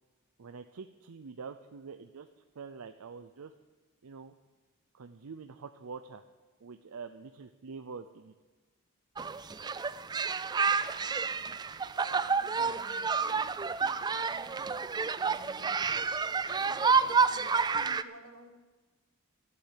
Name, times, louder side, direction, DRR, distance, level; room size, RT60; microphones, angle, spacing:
voice 1, 0.4-2.3 2.5-3.5 4.0-4.3 4.9-6.2 6.6-8.3 12.6-12.8, right 5 dB, 90° right, 8 dB, 0.6 m, -45 dB
sound 1, 9.2-18.0, right 5 dB, 20° right, 0.3 m, -29 dB
voice 2, 10.9-11.5 12.0-13.5 13.8-16.2 16.5-18.6, right 3 dB, 70° right, 6 dB, 1.5 m, -53 dB
14.0 x 8.5 x 8.2 m, 1.3 s
head